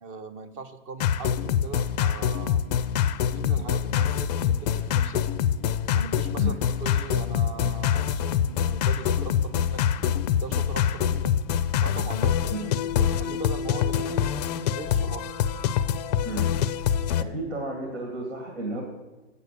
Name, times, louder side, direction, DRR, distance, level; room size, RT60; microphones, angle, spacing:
voice 1, 0.0-2.6 3.2-5.3 5.9-9.8 10.4-11.4 11.8-12.7 13.0-14.3 14.7-15.3, right 4 dB, 20° right, 10 dB, 0.5 m, -39 dB
sound 1, 1.0-17.2, left 9 dB, 40° left, 0.4 m, -25 dB
voice 2, 17.2-18.8, right 1 dB, 90° right, 2 dB, 2.2 m, -32 dB
8.5 x 6.8 x 6.7 m, 1.1 s
hypercardioid pair, 140°, 34 cm